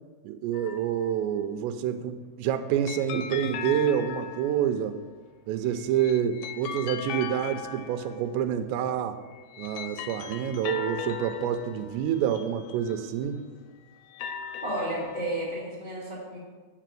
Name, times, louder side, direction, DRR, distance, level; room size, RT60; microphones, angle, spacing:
voice 1, 0.2-5.0 5.5-9.2 9.6-13.4, right 9 dB, 85° right, 7 dB, 2.5 m, -28 dB
sound 1, 0.5-1.3 2.9-4.8 5.8-8.6 9.3-13.4 14.0-15.6, left 8 dB, 85° left, 2.9 m, -39 dB
voice 2, 14.6-16.4, right 1 dB, 30° left, -6 dB, 0.7 m, -32 dB
6.9 x 5.8 x 7.5 m, 1.4 s
omnidirectional pair, 5.5 m